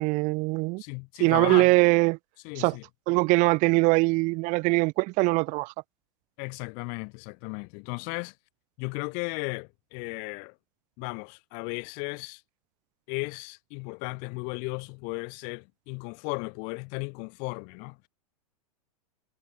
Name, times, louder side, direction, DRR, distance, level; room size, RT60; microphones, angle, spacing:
voice 1, 0.0-0.8 1.2-2.2 2.6-2.8 3.1-5.7, right 25 dB, 40° right, 2.3 m, -22 dB
voice 2, 0.8-1.7 2.4-2.8 6.4-8.3 8.8-10.6 11.0-12.4 13.1-18.0, left 37 dB, 40° left, 5.6 m, -35 dB
figure-of-eight pair, 95°, 20 cm